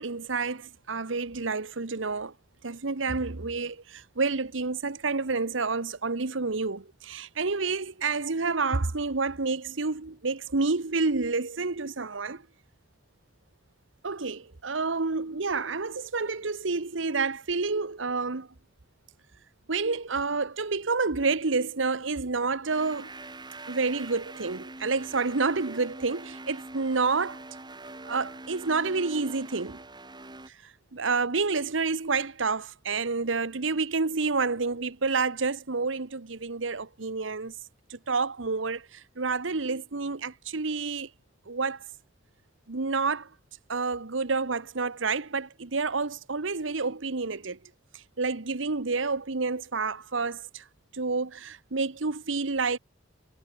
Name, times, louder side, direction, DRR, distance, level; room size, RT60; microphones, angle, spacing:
voice 1, 0.0-2.3 2.6-12.4 14.0-18.5 19.7-23.1 23.7-27.4 28.0-29.8 30.9-37.5 37.9-38.8 39.2-41.1 41.5-41.8 42.7-43.3 43.7-47.6 48.2-50.6 50.9-52.8, right 4 dB, 85° right, 1.2 m, -29 dB
sound 1, 22.7-30.5, right 2 dB, 25° right, 3.9 m, -43 dB
head